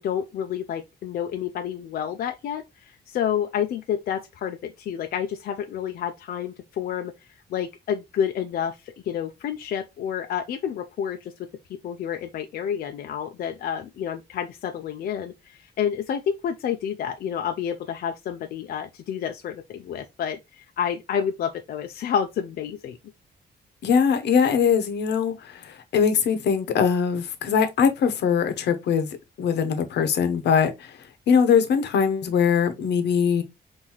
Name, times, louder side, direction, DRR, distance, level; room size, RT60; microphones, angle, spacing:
voice 1, 0.0-11.3 11.8-23.0, left 8 dB, 60° left, 0.4 m, -29 dB
voice 2, 23.8-29.1 29.4-30.9 31.3-33.4, left 6 dB, 80° left, 0.8 m, -21 dB
5.5 x 2.6 x 2.9 m
wide cardioid pair, 175°, 17 cm